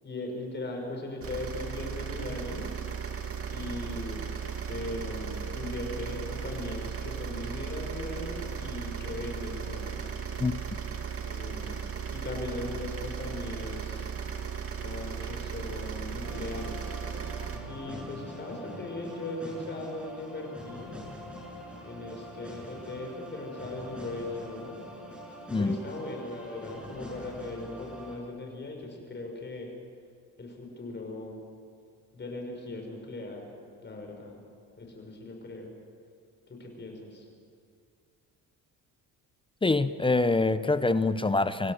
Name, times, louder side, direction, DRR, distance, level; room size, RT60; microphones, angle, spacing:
voice 1, 0.0-2.7 3.5-4.3 4.7-10.0 11.2-14.1 14.8-17.0 17.7-20.9 21.8-24.8 25.6-29.7 30.4-31.4 32.1-33.5 33.8-34.4 34.8-35.7 36.5-37.2, left 2 dB, 30° left, 1 dB, 5.9 m, -39 dB
sound 1, 1.2-17.6, right 7 dB, 40° right, 2.3 m, -36 dB
sound 2, 16.2-28.2, equal, 5° right, 7.0 m, -44 dB
voice 2, 39.6-41.7, left 3 dB, 15° left, 13 dB, 0.7 m, -25 dB
26.5 x 17.0 x 6.7 m, 2.2 s
cardioid pair, 95°, 34 cm